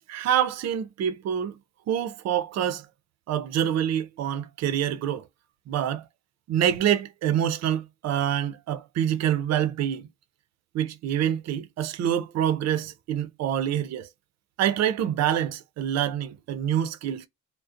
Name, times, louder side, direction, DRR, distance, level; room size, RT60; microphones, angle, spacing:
voice 1, 0.1-1.6 1.9-2.9 3.3-5.3 5.7-6.0 6.5-10.1 10.7-14.1 14.6-17.3, right 10 dB, 60° right, 0.5 m, -26 dB
2.4 x 2.0 x 2.5 m
cardioid pair, 90°, 30 cm